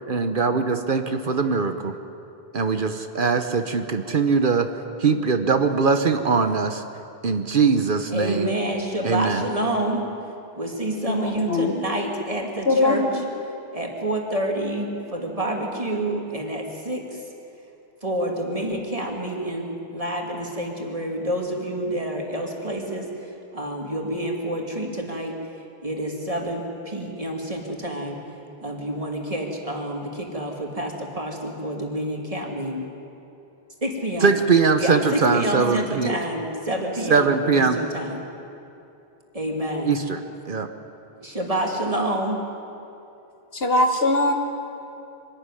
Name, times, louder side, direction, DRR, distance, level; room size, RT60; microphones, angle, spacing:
voice 1, 0.1-2.0 2.5-4.7 5.0-6.8 7.2-8.5 9.0-9.5 34.2-36.2 37.1-37.8 39.9-40.2 40.5-40.7, right 4 dB, 60° right, 8 dB, 1.1 m, -21 dB
voice 2, 8.1-10.1 10.6-13.1 13.7-17.0 18.0-23.1 23.5-25.4 25.8-28.2 28.6-32.9 33.8-34.3 34.8-38.2 39.3-39.9 41.2-42.4, right 1 dB, 35° right, 1 dB, 2.7 m, -28 dB
voice 3, 11.0-11.8 12.6-13.2 43.6-44.3, left 2 dB, 70° left, 4 dB, 1.6 m, -21 dB
24.5 x 12.5 x 9.9 m, 2.8 s
omnidirectional pair, 1.0 m